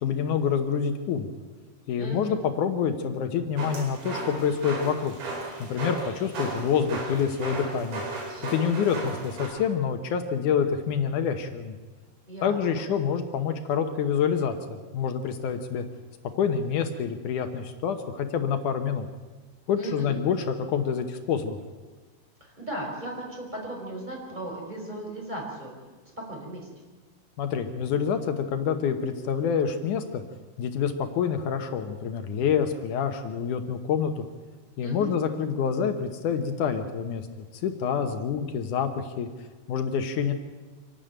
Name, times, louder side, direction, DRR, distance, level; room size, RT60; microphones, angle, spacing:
voice 1, 0.0-1.3 1.9-5.2 5.6-8.0 8.5-11.8 12.4-15.8 16.3-19.1 19.7-21.6 27.4-30.2 30.6-34.2 34.8-37.3 37.6-39.3 39.7-40.3, left 7 dB, 65° left, 7 dB, 2.2 m, -27 dB
voice 2, 2.0-2.4 12.3-12.9 19.8-20.2 22.4-25.7 26.3-26.7 34.8-35.1, right 1 dB, 10° right, -2 dB, 5.1 m, -36 dB
sound 1, 3.6-9.5, right 2 dB, 80° right, 6.0 m, -35 dB
26.5 x 12.0 x 8.9 m, 1.3 s
omnidirectional pair, 4.5 m